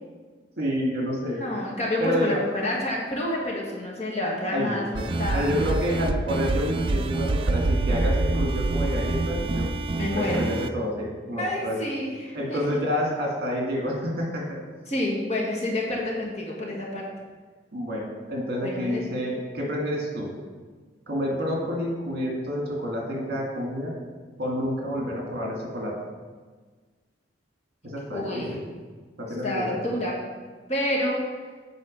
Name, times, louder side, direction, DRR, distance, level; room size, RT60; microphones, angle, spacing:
voice 1, 0.6-1.6 2.0-2.4 4.5-5.1 5.3-9.7 10.1-11.8 12.3-14.6 17.7-20.3 21.1-23.9 24.4-25.9 27.8-28.6 29.2-29.8, equal, 55° right, -1 dB, 1.9 m, -29 dB
voice 2, 1.2-5.5 10.0-10.4 11.4-12.8 14.9-17.1 18.6-19.1 28.1-28.6 29.4-30.2 30.7-31.2, left 1 dB, 35° left, -3 dB, 1.5 m, -28 dB
sound 1, 4.9-10.7, right 2 dB, 30° right, 0.3 m, -26 dB
8.2 x 4.8 x 5.1 m, 1.4 s
head